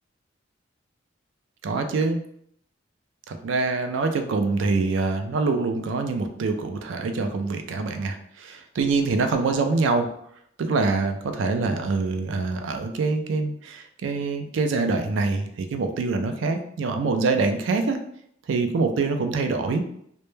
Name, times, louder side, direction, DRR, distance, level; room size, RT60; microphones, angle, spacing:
voice 1, 1.6-2.2 3.4-10.1 10.6-18.0 18.5-19.8, right 3 dB, 70° right, 6 dB, 0.3 m, -25 dB
2.1 x 2.1 x 3.1 m, 0.69 s
head